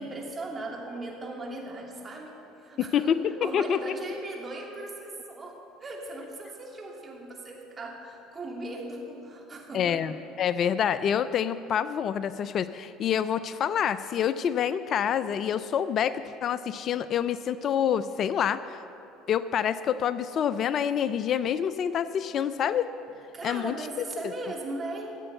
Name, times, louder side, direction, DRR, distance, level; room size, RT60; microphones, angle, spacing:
voice 1, 0.0-10.2 23.3-25.1, right 2 dB, 30° right, 0 dB, 2.7 m, -38 dB
voice 2, 2.9-3.8 9.7-18.8 19.3-22.9 23.4-23.7, left 8 dB, 50° left, 14 dB, 0.4 m, -27 dB
13.5 x 7.9 x 7.8 m, 2.8 s
hypercardioid pair, 80°, 0 cm